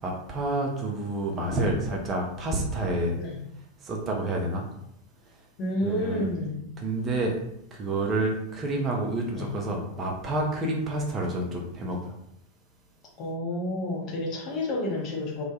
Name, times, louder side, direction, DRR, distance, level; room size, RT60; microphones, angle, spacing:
voice 1, 0.0-3.2 3.8-4.7 5.8-6.3 6.8-7.3 7.7-12.1, right 2 dB, 25° right, 0 dB, 0.5 m, -29 dB
voice 2, 5.6-6.6 9.3-9.5 13.2-15.4, left 1 dB, 35° left, -2 dB, 0.7 m, -30 dB
2.2 x 2.1 x 2.7 m, 0.76 s
figure-of-eight pair, 90°, 0 cm